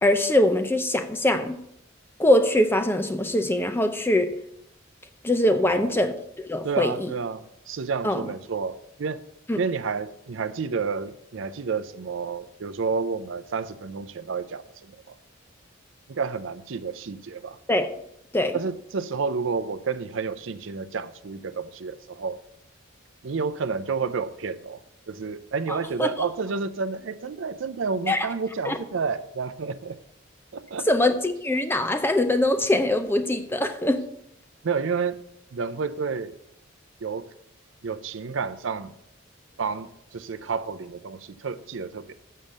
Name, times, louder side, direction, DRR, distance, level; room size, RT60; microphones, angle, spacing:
voice 1, 0.0-1.6 2.2-4.4 5.2-7.1 8.0-8.2 9.5-9.6 17.7-17.9 18.3-18.6 25.7-26.1 28.1-28.3 28.7-28.8 30.9-34.0, left 1 dB, 10° left, 8 dB, 0.5 m, -23 dB
voice 2, 5.5-5.9 6.6-9.2 9.6-15.1 16.1-17.6 18.5-22.4 23.2-24.8 25.1-30.0 30.5-30.9 34.6-35.2 35.5-36.3 37.0-37.3 37.8-38.9 39.6-42.1, right 5 dB, 70° right, 12 dB, 0.5 m, -30 dB
7.2 x 6.4 x 6.5 m, 0.78 s
head